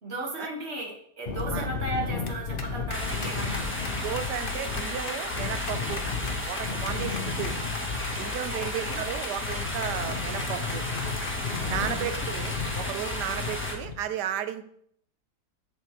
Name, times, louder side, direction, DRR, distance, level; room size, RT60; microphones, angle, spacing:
voice 1, 0.0-3.7 6.8-7.2 8.6-9.0 11.7-12.1, right 2 dB, 40° right, 0 dB, 1.7 m, -36 dB
sound 1, 1.3-13.9, left 5 dB, 45° left, 0.8 m, -34 dB
sound 2, 2.9-13.7, left 1 dB, 10° left, 1.1 m, -34 dB
voice 2, 4.0-6.0 6.5-7.5 8.2-10.8 11.7-14.6, right 10 dB, 80° right, 10 dB, 1.2 m, -34 dB
7.8 x 7.7 x 3.1 m, 0.66 s
omnidirectional pair, 1.8 m